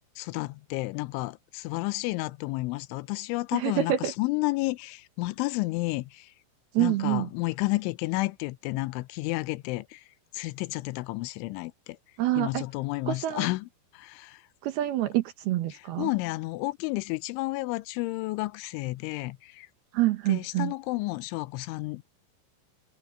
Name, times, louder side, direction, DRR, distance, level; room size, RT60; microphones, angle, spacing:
voice 1, 0.2-6.3 6.8-10.0 10.3-12.0 12.4-14.4 15.7-19.7 20.3-22.1, left 21 dB, 90° left, 3.1 m, -31 dB
voice 2, 3.5-4.1 6.7-7.3 12.2-12.6 13.1-13.5 14.6-16.1 19.9-20.7, right 14 dB, 70° right, 2.6 m, -27 dB
omnidirectional pair, 5.4 m